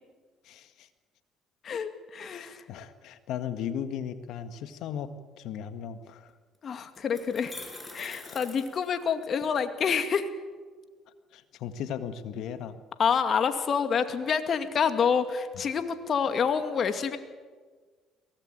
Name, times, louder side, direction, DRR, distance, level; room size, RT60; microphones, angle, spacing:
voice 1, 0.4-0.9 2.3-6.3 8.0-8.4 11.3-12.8, left 8 dB, 70° left, 10 dB, 1.8 m, -37 dB
voice 2, 1.6-2.6 6.6-7.5 7.9-10.3 13.0-17.2, left 6 dB, 50° left, 9 dB, 2.3 m, -27 dB
sound 1, 6.3-6.4 6.9-9.5, left 2 dB, 20° left, 6.1 m, -44 dB
23.0 x 18.0 x 8.9 m, 1.4 s
supercardioid pair, 65°, 0 cm